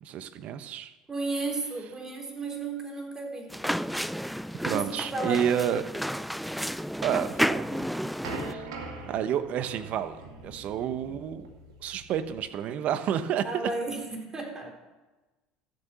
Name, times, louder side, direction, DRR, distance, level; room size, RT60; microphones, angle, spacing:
voice 1, 0.0-0.9 4.6-5.8 7.0-8.0 8.4-8.7 9.0-10.2 10.4-11.5 11.8-13.7, right 9 dB, 55° right, 11 dB, 1.0 m, -30 dB
voice 2, 1.1-3.5 4.6-5.7 13.4-14.7, right 3 dB, 20° right, 1 dB, 3.7 m, -33 dB
sound 1, 3.5-8.5, equal, ahead, 0.3 m, -31 dB
sound 2, 7.5-12.4, right 2 dB, 80° right, 2.0 m, -42 dB
13.0 x 7.3 x 6.9 m, 1.1 s
hypercardioid pair, 75°, 3 cm